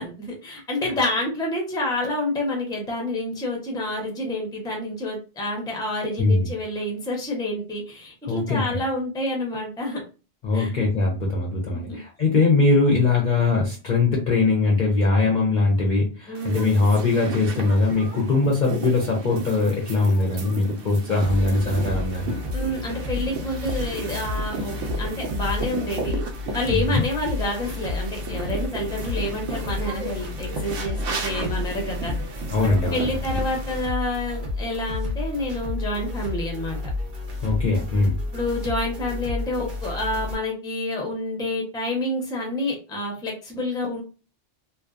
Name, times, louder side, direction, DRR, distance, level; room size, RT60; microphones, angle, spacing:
voice 1, 0.0-10.0 10.5-10.7 11.7-12.0 16.3-16.8 22.5-26.2 26.5-32.1 32.6-36.8 38.3-44.0, left 1 dB, 5° left, 0 dB, 0.5 m, -28 dB
voice 2, 8.2-8.8 10.4-22.3 26.7-27.0 32.5-33.4 37.4-38.2, left 3 dB, 55° left, -1 dB, 0.6 m, -21 dB
sound 1, 16.4-33.8, right 3 dB, 90° right, 1.0 m, -34 dB
sound 2, 21.2-40.4, left 2 dB, 50° right, 0.7 m, -31 dB
2.6 x 2.1 x 2.3 m, 0.33 s
omnidirectional pair, 1.2 m